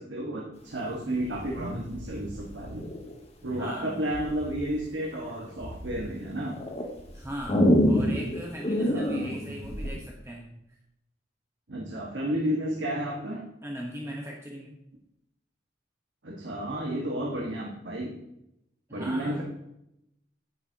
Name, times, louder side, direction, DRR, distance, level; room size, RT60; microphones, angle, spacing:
voice 1, 0.0-2.9 3.4-6.6 8.8-9.5 11.7-13.4 16.2-18.1 18.9-19.4, right 1 dB, 85° right, -2 dB, 1.6 m, -32 dB
sound 1, 1.3-3.1 4.1-4.6 5.1-6.0 6.5-10.0, equal, 35° left, 1.6 m, -27 dB
voice 2, 3.6-4.0 7.1-10.5 13.6-14.8 18.9-19.4, equal, 15° right, -1 dB, 1.1 m, -39 dB
9.9 x 9.9 x 2.9 m, 0.83 s
head